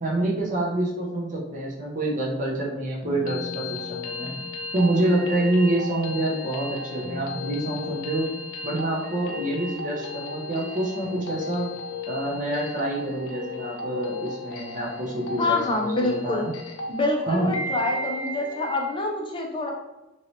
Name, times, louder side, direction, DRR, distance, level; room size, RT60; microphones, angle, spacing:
voice 1, 0.0-4.3 4.7-8.3 8.6-11.7 12.1-16.5 17.3-17.5, right 1 dB, 40° right, -3 dB, 0.7 m, -27 dB
sound 1, 3.0-19.0, left 3 dB, 80° left, 0.5 m, -35 dB
voice 2, 15.4-16.5 16.9-19.7, left 2 dB, 25° left, 0 dB, 0.5 m, -26 dB
3.1 x 2.8 x 2.7 m, 1.0 s
head